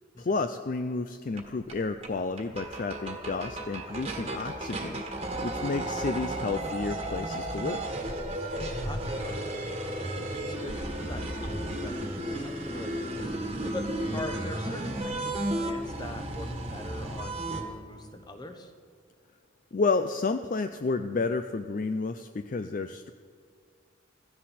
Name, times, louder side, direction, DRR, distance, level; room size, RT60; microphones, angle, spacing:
voice 1, 0.2-5.0 5.4-7.8 19.7-23.1, left 3 dB, 40° left, 9 dB, 0.4 m, -31 dB
sound 1, 1.4-1.5 1.7-1.8 2.0-2.1 2.4-17.6, right 1 dB, 30° right, 1.6 m, -33 dB
voice 2, 8.8-9.7 10.4-12.0 12.3-18.7, left 1 dB, 20° left, 6 dB, 1.0 m, -42 dB
16.0 x 14.5 x 4.3 m, 2.1 s
head